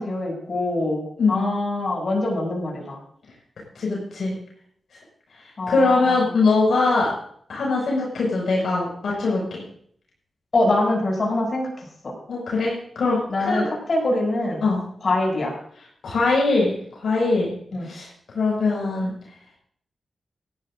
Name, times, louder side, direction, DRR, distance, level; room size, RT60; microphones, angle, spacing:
voice 1, 0.0-3.0 5.6-6.3 10.5-12.1 13.3-13.6 13.9-14.6 15.0-15.5 17.7-17.9, left 2 dB, 50° left, -1 dB, 7.4 m, -24 dB
voice 2, 3.7-4.3 5.7-7.1 7.5-9.6 12.3-13.7 14.6-14.8 16.0-17.5 17.8-18.1 18.3-19.1, left 3 dB, 80° left, -3 dB, 6.0 m, -22 dB
18.5 x 14.5 x 2.7 m, 0.62 s
wide cardioid pair, 90°, 0 cm